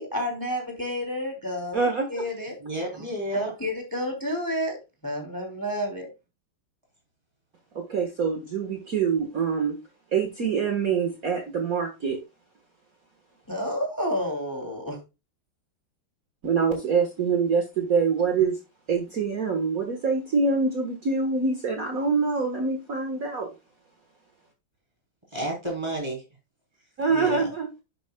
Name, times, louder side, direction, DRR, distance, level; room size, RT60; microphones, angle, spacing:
voice 1, 0.0-2.6 3.3-4.8 5.0-6.1 13.5-15.0, equal, 10° left, 2.6 m, -30 dB
voice 2, 1.7-2.1 7.7-9.8 10.1-12.2 16.4-18.6 18.9-23.5 27.0-27.8, right 5 dB, 50° right, 1.7 m, -25 dB
voice 3, 2.6-3.5 25.3-26.2 27.1-27.5, right 1 dB, 15° right, 3.7 m, -31 dB
10.5 x 8.1 x 2.3 m
omnidirectional pair, 2.1 m